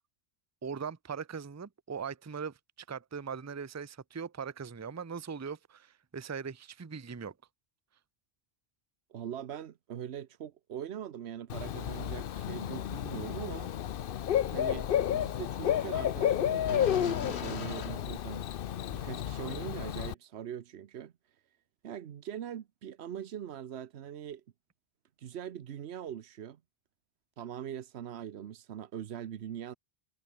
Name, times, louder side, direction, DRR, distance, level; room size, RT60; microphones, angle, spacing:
voice 1, 0.6-2.6 2.9-7.3, right 6 dB, 20° right, 0.5 m, -40 dB
voice 2, 9.1-13.7 14.5-18.4 18.9-21.1 21.8-24.4 25.2-26.6 27.4-29.8, right 9 dB, 85° right, 1.1 m, -42 dB
Bird / Cricket, 11.5-20.1, left 10 dB, 65° left, 0.8 m, -32 dB
sound 1, 11.8-18.8, left 6 dB, 90° left, 1.5 m, -45 dB
omnidirectional pair, 1.1 m